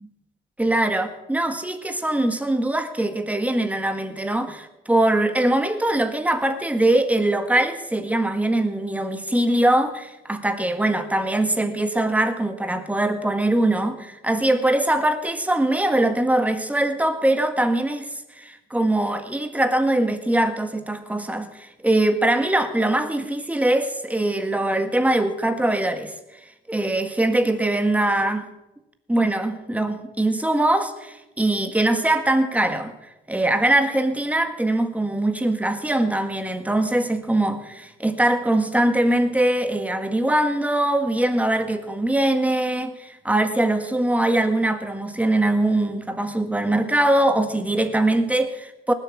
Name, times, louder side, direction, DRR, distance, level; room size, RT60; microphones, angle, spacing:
voice 1, 0.6-18.1 18.3-26.1 26.7-28.5 29.1-32.9 33.3-48.9, right 1 dB, 5° right, 8 dB, 1.7 m, -22 dB
19.0 x 8.2 x 7.3 m, 0.96 s
cardioid pair, 90°, 20 cm